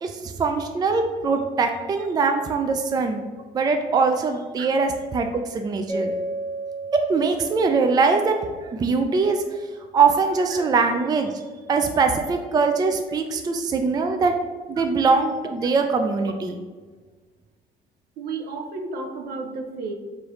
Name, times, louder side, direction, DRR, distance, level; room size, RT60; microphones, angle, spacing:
voice 1, 0.0-3.2 3.5-6.1 7.1-9.4 9.9-11.3 11.7-14.3 14.7-16.5, right 4 dB, 25° right, 5 dB, 0.4 m, -22 dB
Mallet percussion, 5.9-8.9, right 1 dB, 15° left, 0.7 m, -33 dB
voice 2, 18.2-19.9, right 3 dB, 70° right, 4 dB, 0.6 m, -32 dB
4.7 x 2.7 x 3.1 m, 1.4 s
cardioid pair, 110°, 17 cm